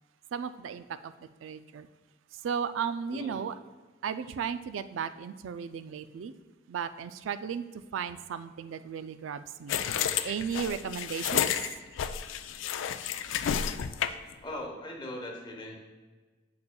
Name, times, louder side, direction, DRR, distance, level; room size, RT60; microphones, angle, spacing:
voice 1, 0.3-1.1 1.4-1.9 2.4-3.5 4.0-6.3 6.7-9.8 10.2-11.7, right 7 dB, 85° right, 12 dB, 0.3 m, -35 dB
sound 1, 9.7-14.3, left 8 dB, 75° left, 0.3 m, -31 dB
voice 2, 14.4-15.8, left 1 dB, 25° left, 0 dB, 1.0 m, -39 dB
6.9 x 6.6 x 2.3 m, 1.3 s
head